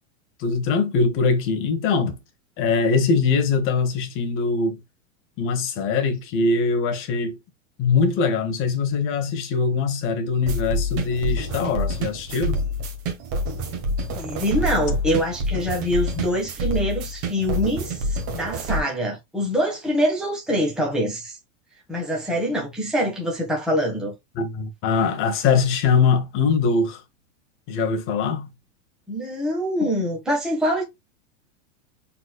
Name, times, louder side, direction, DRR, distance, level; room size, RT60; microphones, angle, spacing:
voice 1, 0.4-2.2 2.6-4.8 5.4-7.4 7.8-12.6 24.4-27.0 27.7-28.5 29.8-29.9, left 5 dB, 30° left, 1.2 m, -22 dB
sound 1, 10.4-18.8, equal, 35° right, 1.6 m, -27 dB
voice 2, 14.1-21.4 21.9-24.1 29.1-30.8, equal, ahead, 1.6 m, -24 dB
4.1 x 4.1 x 2.3 m
supercardioid pair, 150°, 39 cm